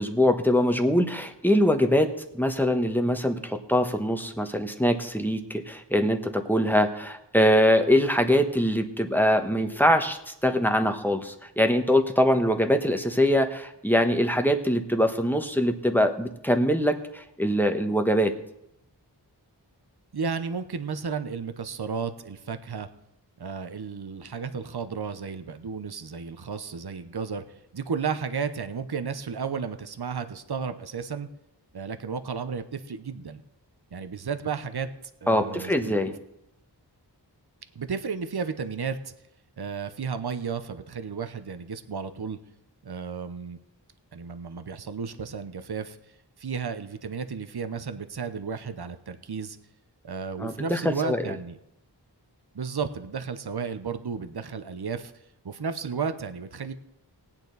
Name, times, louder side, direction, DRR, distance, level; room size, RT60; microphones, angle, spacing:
voice 1, 0.0-18.3 35.3-36.1 50.4-51.2, equal, 5° left, 5 dB, 1.2 m, -23 dB
voice 2, 20.1-22.9 23.4-31.3 31.7-33.4 33.9-34.9 35.2-35.9 37.7-39.1 39.6-42.4 42.8-43.6 44.1-46.0 46.4-49.6 50.0-51.6 52.5-55.1 55.4-56.7, right 6 dB, 60° right, 9 dB, 0.9 m, -33 dB
18.5 x 8.8 x 4.0 m, 0.82 s
wide cardioid pair, 40°, 43 cm